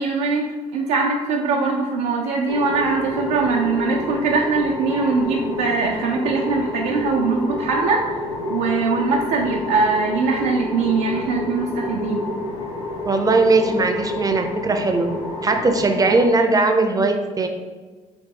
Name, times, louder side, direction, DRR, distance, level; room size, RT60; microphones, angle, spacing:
voice 1, 0.0-12.3, right 4 dB, 75° right, -1 dB, 0.4 m, -22 dB
sound 1, 2.5-16.3, left 3 dB, 90° left, 0.5 m, -29 dB
voice 2, 13.0-15.1 15.4-17.5, right 3 dB, 20° right, 6 dB, 0.5 m, -19 dB
3.8 x 2.6 x 3.6 m, 1.3 s
hypercardioid pair, 50°, 18 cm